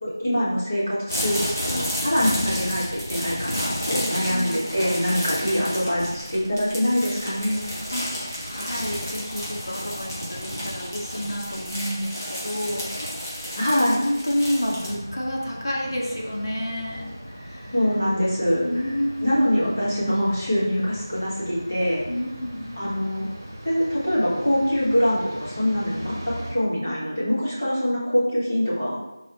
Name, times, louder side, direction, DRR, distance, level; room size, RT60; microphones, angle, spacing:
voice 1, 0.0-7.6 13.6-14.0 17.7-18.7 19.2-22.1 22.7-23.3 23.6-29.0, equal, 25° left, -8 dB, 1.6 m, -24 dB
sound 1, 1.1-14.9, equal, 45° left, 2.0 m, -31 dB
voice 2, 2.2-2.6 4.3-4.6 7.9-8.0 8.4-12.9 13.7-17.7 18.6-19.3 22.1-23.0, equal, 75° left, -3 dB, 2.0 m, -29 dB
sound 2, 14.8-26.5, equal, 30° right, 1.9 m, -40 dB
6.6 x 4.7 x 3.1 m, 0.91 s
figure-of-eight pair, 180°, 2 cm